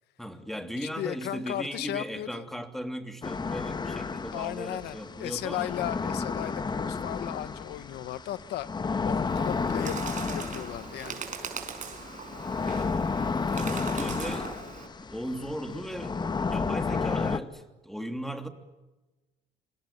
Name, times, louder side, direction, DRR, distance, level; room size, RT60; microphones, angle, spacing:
voice 1, 0.2-5.7 12.4-13.0 13.5-14.6 15.1-18.5, equal, ahead, 7 dB, 3.0 m, -37 dB
voice 2, 0.8-2.5 4.3-11.3, left 13 dB, 75° left, 14 dB, 1.4 m, -36 dB
sound 1, 3.2-17.4, left 4 dB, 25° left, 1.3 m, -32 dB
Bird, 9.3-14.9, right 6 dB, 50° right, 5.2 m, -40 dB
26.5 x 25.5 x 8.6 m, 1.1 s
cardioid pair, 110°, 17 cm